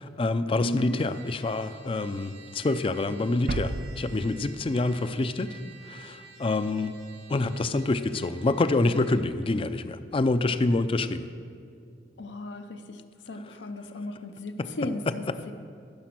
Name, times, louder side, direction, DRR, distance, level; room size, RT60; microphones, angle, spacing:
voice 1, 0.0-5.6 5.8-7.0 7.3-11.3 13.3-13.6 14.6-14.7 15.1-15.4, left 2 dB, 30° left, 11 dB, 0.4 m, -27 dB
voice 2, 0.6-1.0 12.2-13.0 13.3-15.5, left 2 dB, 80° left, 8 dB, 0.7 m, -35 dB
Trumpet, 0.7-9.3, right 5 dB, 90° right, 1.9 m, -51 dB
sound 1, 3.5-6.2, right 3 dB, 50° right, 0.4 m, -35 dB
14.5 x 6.0 x 6.0 m, 2.4 s
head